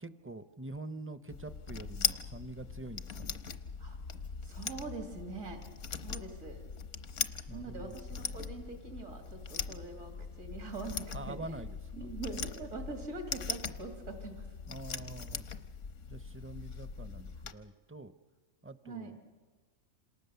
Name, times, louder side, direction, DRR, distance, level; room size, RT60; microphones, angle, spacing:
voice 1, 0.0-3.4 7.5-8.0 11.1-11.8 14.7-15.4 16.1-18.1 18.6-19.1, right 2 dB, 15° right, 12 dB, 0.5 m, -45 dB
sound 1, 1.3-17.5, left 6 dB, 70° left, 1.3 m, -40 dB
voice 2, 4.4-5.6 6.0-6.6 7.5-10.1 10.4-11.6 11.9-14.5 18.8-19.1, right 3 dB, 80° right, 3 dB, 2.9 m, -43 dB
27.5 x 27.0 x 6.9 m, 1.3 s
omnidirectional pair, 1.3 m